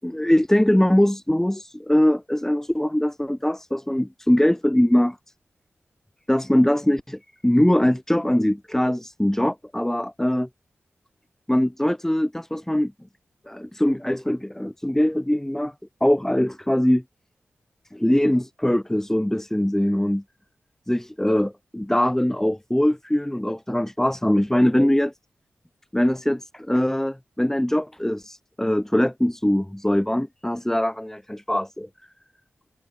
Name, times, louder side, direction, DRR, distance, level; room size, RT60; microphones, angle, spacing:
voice 1, 0.0-5.2 6.3-10.5 11.5-12.9 13.5-15.7 16.0-17.0 17.9-20.2 20.9-25.1 25.9-31.9, left 1 dB, 10° left, 5.8 m, -22 dB
cardioid pair, 50°, 4 cm